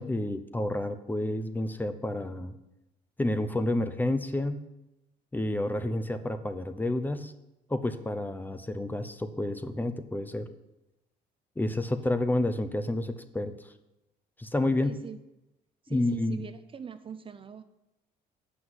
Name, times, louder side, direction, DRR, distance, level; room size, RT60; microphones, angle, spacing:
voice 1, 0.0-2.5 3.2-4.6 5.3-7.3 7.7-10.5 11.6-13.5 14.4-14.9 15.9-16.4, left 1 dB, 10° left, 10 dB, 0.7 m, -29 dB
voice 2, 14.8-15.2 15.8-17.6, right 7 dB, 30° right, 11 dB, 0.5 m, -42 dB
7.5 x 6.1 x 7.9 m, 0.94 s
cardioid pair, 110°, 17 cm